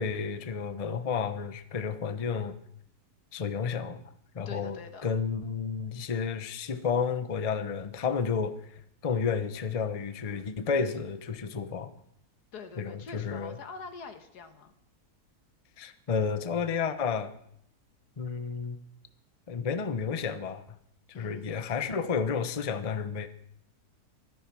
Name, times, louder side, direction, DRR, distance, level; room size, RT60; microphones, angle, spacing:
voice 1, 0.0-2.6 3.3-4.0 4.3-4.8 5.0-11.9 12.8-13.6 15.8-17.3 18.2-18.8 19.5-20.6 21.1-23.3, left 6 dB, 30° left, 11 dB, 0.8 m, -31 dB
voice 2, 4.5-5.1 12.5-14.7 21.1-21.6, left 5 dB, 75° left, 8 dB, 1.9 m, -44 dB
15.5 x 13.5 x 6.2 m, 0.70 s
omnidirectional pair, 1.7 m